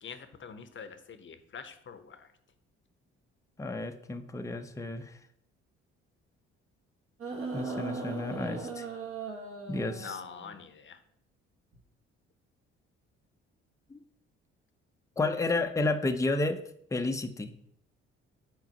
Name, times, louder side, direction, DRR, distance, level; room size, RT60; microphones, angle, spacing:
voice 1, 0.0-2.3 10.0-11.0, left 6 dB, 40° left, 10 dB, 0.8 m, -45 dB
voice 2, 3.6-5.1 7.5-8.9 9.7-10.2 13.9-14.0 15.2-16.6 16.9-17.5, left 2 dB, 10° left, 7 dB, 0.6 m, -31 dB
sound 1, 7.2-10.6 11.7-11.8, right 4 dB, 50° right, 1.4 m, -38 dB
4.7 x 4.0 x 5.3 m, 0.70 s
supercardioid pair, 60°, 29 cm